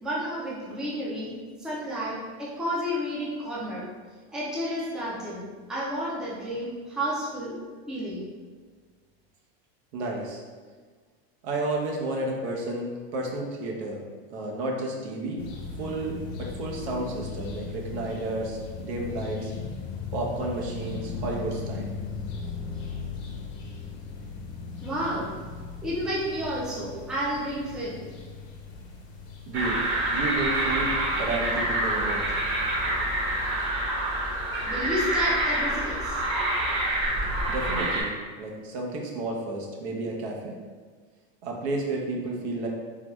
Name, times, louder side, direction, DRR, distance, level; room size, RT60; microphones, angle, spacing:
voice 1, 0.0-3.9 4.3-7.6 7.9-8.2 24.8-25.3 25.8-28.0 34.7-36.2, equal, ahead, -6 dB, 0.4 m, -31 dB
voice 2, 9.9-10.4 11.4-14.0 14.3-15.4 15.8-19.5 20.1-21.9 29.5-29.8 30.1-30.9 31.2-32.2 37.5-38.1 38.4-40.5 41.4-42.7, right 2 dB, 85° right, 0 dB, 0.9 m, -31 dB
sound 1, 15.4-33.5, left 4 dB, 90° left, 1.0 m, -38 dB
sound 2, 29.5-38.0, right 1 dB, 40° right, 1.1 m, -27 dB
3.8 x 2.2 x 3.0 m, 1.5 s
supercardioid pair, 150°, 32 cm